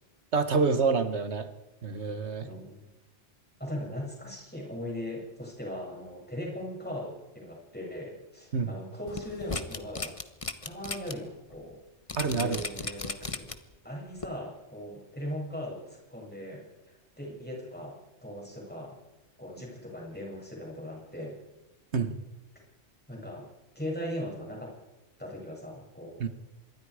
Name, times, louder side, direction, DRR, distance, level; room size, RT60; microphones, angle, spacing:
voice 1, 0.3-1.5 1.8-2.5 8.5-8.7 12.2-12.6 21.9-22.2 26.2-26.3, right 4 dB, 70° right, 10 dB, 1.7 m, -27 dB
voice 2, 2.4-2.9 3.6-10.1 10.6-11.8 12.2-13.5 13.8-19.0 19.4-21.3 23.1-23.5 23.7-24.7 25.2-26.3, equal, 10° left, -2 dB, 7.9 m, -39 dB
sound 1, 9.1-11.1 11.5-11.6 12.1-13.7 14.2-14.3, left 3 dB, 30° left, 1.2 m, -35 dB
26.0 x 22.5 x 5.0 m, 1.1 s
omnidirectional pair, 1.2 m